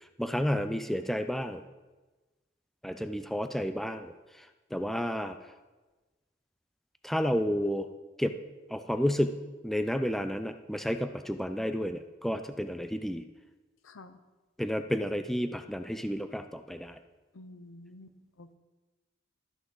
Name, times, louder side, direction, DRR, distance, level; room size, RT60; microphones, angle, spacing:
voice 1, 0.2-1.6 2.8-4.1 4.7-5.4 7.0-7.9 8.2-8.3 8.7-9.3 9.6-13.2 14.6-17.0, equal, ahead, 8 dB, 0.3 m, -31 dB
voice 2, 13.8-14.2 17.3-18.5, left 2 dB, 90° left, 11 dB, 0.7 m, -50 dB
13.0 x 6.1 x 3.8 m, 1.2 s
head